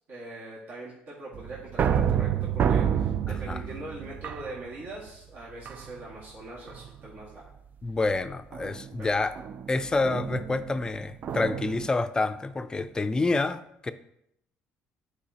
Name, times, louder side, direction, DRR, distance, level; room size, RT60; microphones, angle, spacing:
voice 1, 0.1-7.4 9.0-9.1, right 2 dB, 65° right, 1.9 m, -42 dB
sound 1, 1.3-5.1 5.6-6.2 6.7-7.1 8.5-11.9, right 8 dB, 45° right, 0.4 m, -29 dB
voice 2, 3.3-3.6 7.8-9.4 9.7-13.9, left 3 dB, 20° left, 0.4 m, -28 dB
10.5 x 4.8 x 2.9 m
cardioid pair, 105°, 4 cm